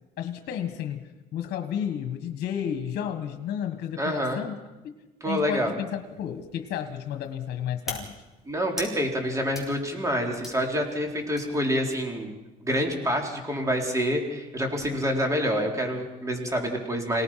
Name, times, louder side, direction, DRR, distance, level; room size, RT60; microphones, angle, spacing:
voice 1, 0.2-4.5 5.2-8.1, left 9 dB, 70° left, 6 dB, 1.6 m, -32 dB
voice 2, 4.0-4.4 5.2-5.7 8.5-12.3 12.6-17.2, equal, 20° right, 2 dB, 4.2 m, -27 dB
sound 1, 5.9-12.2, left 2 dB, ahead, 6.3 m, -44 dB
28.0 x 18.0 x 5.9 m, 1.1 s
cardioid pair, 110°, 17 cm